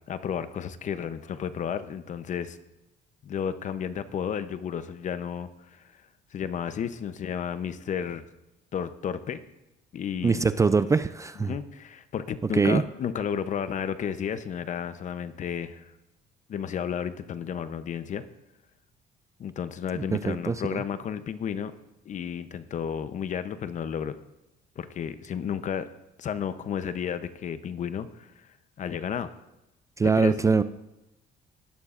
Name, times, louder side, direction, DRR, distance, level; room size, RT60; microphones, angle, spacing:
voice 1, 0.1-2.6 3.2-5.8 6.3-8.2 8.7-9.4 9.9-10.4 11.4-15.9 16.5-18.2 19.4-21.7 22.1-24.2 24.8-25.9 26.2-28.3 28.8-29.3 30.1-30.4, left 8 dB, 45° left, 12 dB, 0.7 m, -32 dB
voice 2, 10.2-11.6 12.5-12.8 19.9-20.6 30.0-30.6, right 4 dB, 20° right, 13 dB, 0.3 m, -23 dB
17.5 x 11.5 x 2.5 m, 0.93 s
cardioid pair, 110°, 17 cm